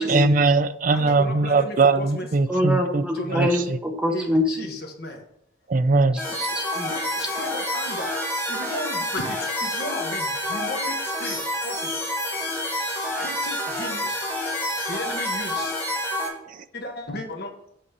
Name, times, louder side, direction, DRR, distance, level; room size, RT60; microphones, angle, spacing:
voice 1, 0.1-3.0 3.3-3.8 5.7-6.2, right 3 dB, 45° right, 12 dB, 0.4 m, -20 dB
voice 2, 0.9-2.5 3.1-3.6 4.1-5.2 6.9-8.2 8.5-12.0 13.1-14.2 14.9-15.8 16.7-17.5, left 1 dB, 55° left, 3 dB, 1.4 m, -35 dB
voice 3, 2.5-4.7 6.1-6.9, left 1 dB, 5° right, 1 dB, 1.3 m, -25 dB
sound 1, 6.2-16.3, left 1 dB, 10° left, 1.7 m, -28 dB
7.7 x 4.1 x 6.6 m, 0.73 s
head